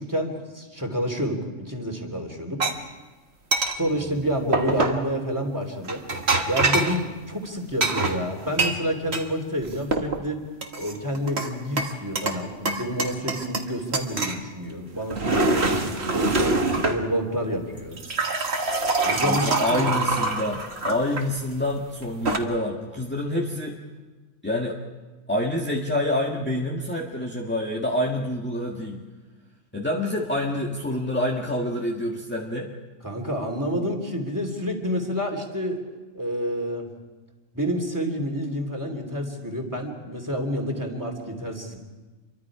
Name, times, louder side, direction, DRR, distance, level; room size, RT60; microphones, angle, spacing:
voice 1, 0.0-2.7 3.7-6.0 6.5-10.4 10.7-16.5 16.9-18.0 19.0-19.9 33.0-35.8 36.1-36.9 37.5-41.8, equal, 15° right, 2 dB, 3.0 m, -29 dB
sound 1, 2.6-2.7 3.5-3.8 4.5-5.0 5.9-7.0 7.8-9.3 9.6-10.2 10.6-11.5 11.8-12.4 12.7-13.7 13.9-14.4 14.9-17.0 17.8-21.2 22.0-22.4, right 2 dB, 55° right, 1.9 m, -24 dB
voice 2, 19.1-23.8 24.4-24.8 25.3-29.0 29.7-32.7, left 1 dB, 10° left, -1 dB, 1.7 m, -27 dB
28.0 x 24.0 x 4.9 m, 1.3 s
omnidirectional pair, 1.3 m